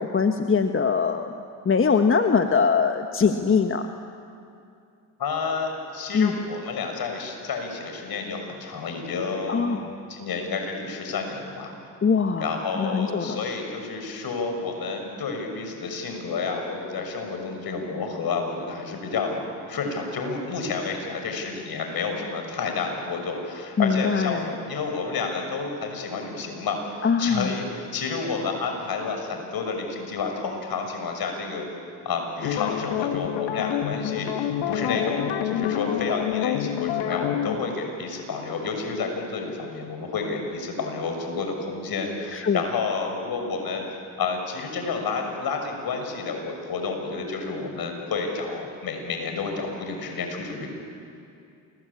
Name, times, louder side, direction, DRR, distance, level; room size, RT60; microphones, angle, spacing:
voice 1, 0.0-1.3 1.6-3.9 6.1-6.3 9.5-9.9 12.0-13.4 23.8-24.5 27.0-27.5 42.3-42.6, left 5 dB, 30° left, 6 dB, 1.4 m, -22 dB
voice 2, 5.2-11.7 12.4-31.7 32.0-43.8 44.2-50.7, left 4 dB, 55° left, 4 dB, 6.5 m, -30 dB
sound 1, 32.4-37.6, left 10 dB, 75° left, 1.6 m, -27 dB
28.0 x 22.0 x 8.7 m, 2.5 s
hypercardioid pair, 60°, 43 cm